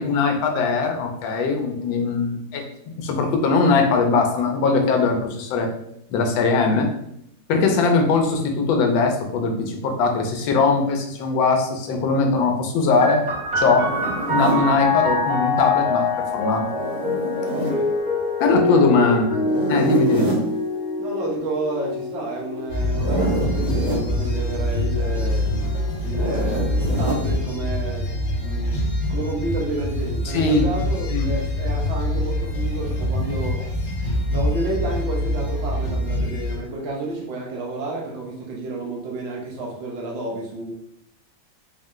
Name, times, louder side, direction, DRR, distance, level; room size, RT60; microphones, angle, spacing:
voice 1, 0.0-5.7 6.1-6.9 7.5-13.2 13.6-13.9 14.3-16.7 18.4-19.4 19.7-20.3 30.3-30.7 31.1-31.3, left 4 dB, 85° left, 3 dB, 1.4 m, -20 dB
sound 1, 13.0-26.2 27.1-27.9, left 2 dB, 10° right, 0.5 m, -26 dB
Zipper (clothing), 13.8-14.7 16.6-17.8 19.4-20.5 22.9-24.1 26.1-27.2, right 1 dB, 65° right, 2.0 m, -26 dB
voice 2, 17.6-17.9 18.8-19.3 21.0-25.8 26.0-28.1 28.4-28.8 29.1-33.6 34.3-40.7, right 2 dB, 80° right, -1 dB, 1.6 m, -30 dB
sound 2, 22.7-36.6, left 1 dB, 55° left, 1.5 m, -25 dB
4.3 x 2.1 x 3.7 m, 0.75 s
omnidirectional pair, 2.0 m